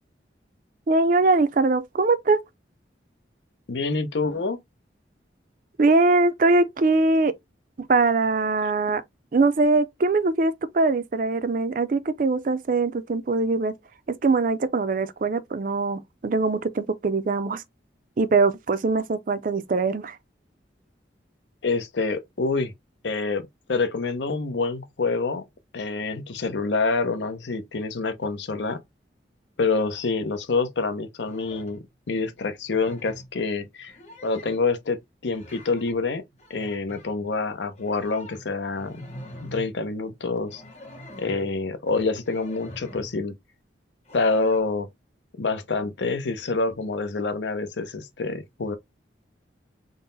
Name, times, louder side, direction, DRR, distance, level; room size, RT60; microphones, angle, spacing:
voice 1, 0.9-2.4 5.8-7.3 7.8-9.0 9.3-13.7 14.1-17.6 18.2-20.2, right 3 dB, 45° right, 0.4 m, -22 dB
voice 2, 3.7-4.6 21.6-22.7 23.0-25.4 25.7-28.8 29.6-34.0 34.2-36.2 36.5-39.1 39.4-40.6 41.2-43.3 44.1-44.9 45.4-48.8, left 3 dB, 75° left, 0.7 m, -27 dB
sound 1, 31.2-31.8 32.6-33.3 33.8-34.8 35.3-36.0 36.3-37.1 37.8-39.7 40.4-41.5 42.2-43.2 44.0-44.6, equal, 35° left, 1.2 m, -44 dB
3.8 x 2.1 x 3.9 m
head